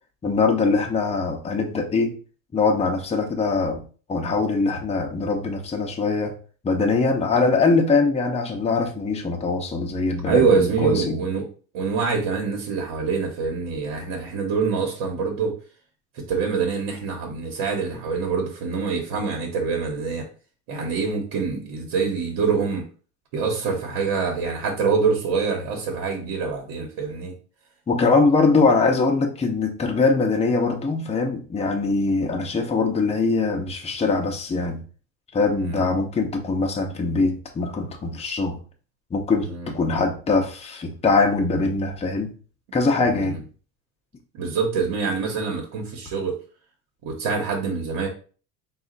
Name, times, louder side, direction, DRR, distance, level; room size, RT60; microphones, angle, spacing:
voice 1, 0.2-2.2 2.5-3.8 4.1-6.3 6.6-11.2 27.9-34.8 35.3-38.6 39.1-42.3 42.7-43.4, left 3 dB, 20° left, 2 dB, 0.7 m, -22 dB
voice 2, 10.2-11.5 11.7-15.6 16.1-20.3 20.7-22.9 23.3-27.3 35.6-35.8 39.4-39.7 43.0-43.4 44.3-46.4 47.0-48.1, right 5 dB, 70° right, 1 dB, 1.2 m, -25 dB
4.1 x 2.4 x 3.9 m, 0.39 s
cardioid pair, 120°, 35 cm